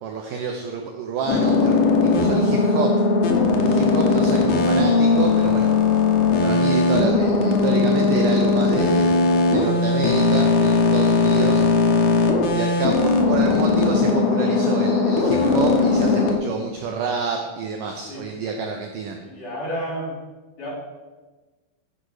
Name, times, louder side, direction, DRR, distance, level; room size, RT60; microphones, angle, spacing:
voice 1, 0.0-2.9 3.6-5.7 6.4-11.6 12.1-12.2 12.5-19.2, right 5 dB, 85° right, 3 dB, 1.8 m, -28 dB
sound 1, 1.3-16.4, left 3 dB, 70° left, 2.0 m, -18 dB
voice 2, 19.2-20.1 20.6-20.7, equal, 45° left, -8 dB, 4.1 m, -30 dB
11.0 x 5.0 x 4.8 m, 1.2 s
omnidirectional pair, 4.6 m